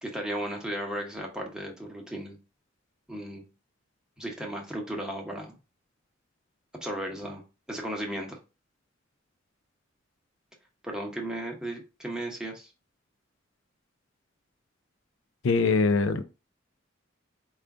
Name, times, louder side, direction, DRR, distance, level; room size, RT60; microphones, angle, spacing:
voice 1, 0.0-2.4 3.1-3.5 4.2-5.5 6.8-8.4 10.8-12.7, right 1 dB, 5° right, 0.9 m, -35 dB
voice 2, 15.4-16.2, left 4 dB, 80° left, 0.4 m, -22 dB
4.9 x 2.4 x 3.5 m
head